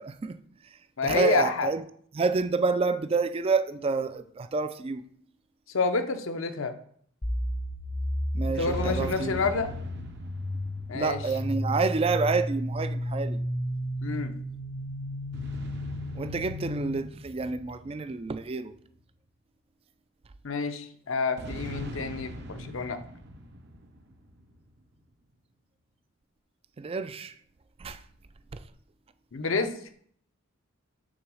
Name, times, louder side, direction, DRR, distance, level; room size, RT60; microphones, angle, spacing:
voice 1, 0.0-1.8 2.1-5.1 8.3-9.6 10.9-13.4 16.2-18.7 26.8-27.4 27.8-28.0 28.5-28.6, right 4 dB, 25° right, 0.3 m, -29 dB
voice 2, 1.0-1.7 5.7-6.7 8.6-9.7 10.9-11.2 14.0-14.3 20.4-23.0 29.3-29.7, left 4 dB, 65° left, 0.7 m, -28 dB
sound 1, 7.2-17.0, equal, 25° left, 0.7 m, -33 dB
sound 2, 8.6-12.2 15.3-19.0 21.4-24.8, right 1 dB, 55° right, 0.7 m, -42 dB
6.2 x 3.9 x 6.2 m
head